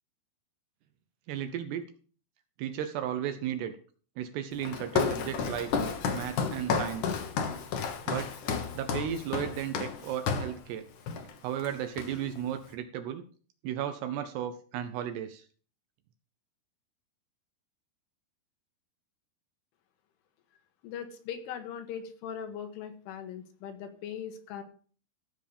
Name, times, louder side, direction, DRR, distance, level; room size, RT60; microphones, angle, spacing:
voice 1, 1.3-1.9 2.6-3.7 4.2-7.2 8.1-8.4 8.7-10.8 11.4-13.3 13.6-15.5, right 10 dB, 75° right, 9 dB, 2.6 m, -35 dB
Walk footsteps, 4.6-10.6 11.1-11.3 11.6-12.4, left 6 dB, 65° left, 2.0 m, -32 dB
voice 2, 20.8-24.6, left 8 dB, 85° left, 6 dB, 4.0 m, -40 dB
15.0 x 7.3 x 5.3 m, 0.42 s
omnidirectional pair, 5.5 m